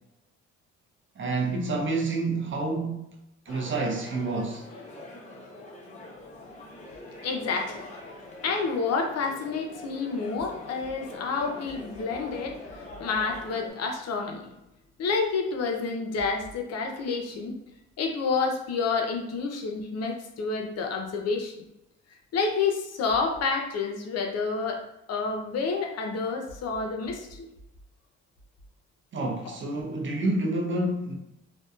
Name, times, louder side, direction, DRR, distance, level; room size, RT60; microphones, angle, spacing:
voice 1, 1.2-3.1 3.5-4.7 29.1-31.2, right 2 dB, 40° right, 0.6 m, -28 dB
sound 1, 3.5-13.7, left 2 dB, 25° left, 0.7 m, -44 dB
voice 2, 7.2-7.8 8.4-14.4 15.0-17.5 18.0-21.6 22.3-24.8 25.1-27.5 29.5-29.6, left 4 dB, 55° left, 0.5 m, -29 dB
2.6 x 2.1 x 2.3 m
cardioid pair, 90°, 30 cm